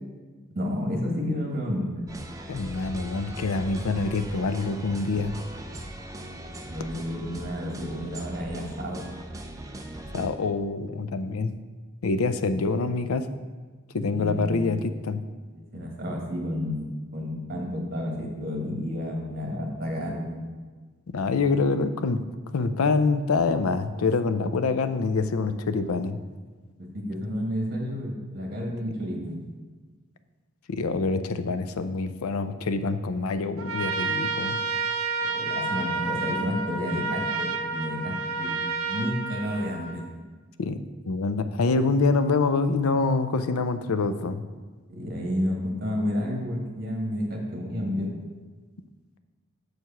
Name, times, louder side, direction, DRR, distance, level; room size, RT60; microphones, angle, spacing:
voice 1, 0.5-1.9 6.7-9.0 14.1-14.7 15.5-20.4 26.9-29.4 35.3-38.6 38.9-40.0 44.9-48.1, left 1 dB, 45° right, -1 dB, 1.5 m, -31 dB
sound 1, 2.1-10.3, right 1 dB, 15° right, 0.4 m, -39 dB
voice 2, 2.5-5.3 10.1-11.5 12.0-13.3 13.9-15.2 21.1-22.2 22.5-26.2 30.7-34.6 40.6-44.4, left 3 dB, 90° left, 10 dB, 0.5 m, -26 dB
Trumpet, 33.6-40.1, right 4 dB, 80° right, 0.6 m, -30 dB
6.5 x 4.7 x 5.7 m, 1.4 s
head